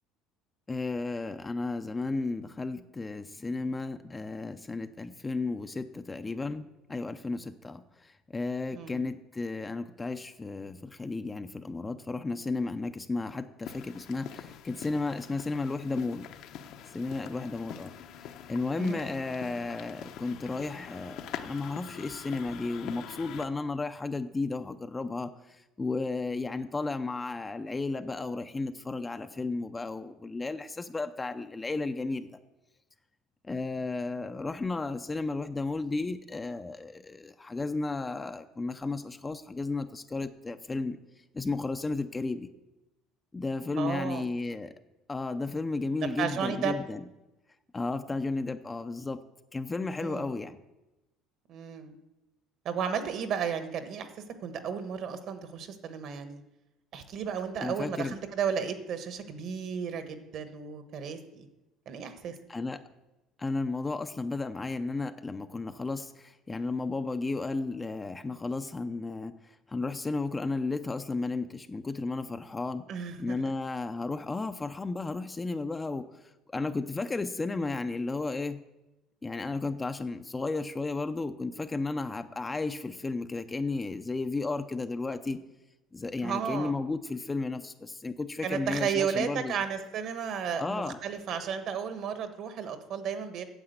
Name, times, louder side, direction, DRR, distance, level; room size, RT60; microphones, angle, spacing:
voice 1, 0.7-16.3 16.9-17.9 18.5-32.3 33.5-41.0 41.3-42.5 43.3-44.7 45.1-47.0 47.7-49.2 49.5-50.6 57.6-58.2 62.5-62.8 63.4-69.3 69.7-72.9 73.2-76.1 76.5-78.6 79.2-85.4 85.9-89.6 90.6-91.0, left 3 dB, 15° left, 8 dB, 0.5 m, -33 dB
voice 2, 8.7-9.0 18.8-19.1 43.8-44.3 46.2-46.8 50.0-50.3 51.5-51.9 52.6-56.4 56.9-61.5 61.9-62.4 72.9-73.4 86.2-86.8 88.4-93.4, right 7 dB, 50° right, 9 dB, 1.3 m, -33 dB
sound 1, 13.6-23.5, left 9 dB, 60° left, 0.8 m, -44 dB
9.6 x 7.4 x 8.0 m, 0.99 s
cardioid pair, 140°, 0 cm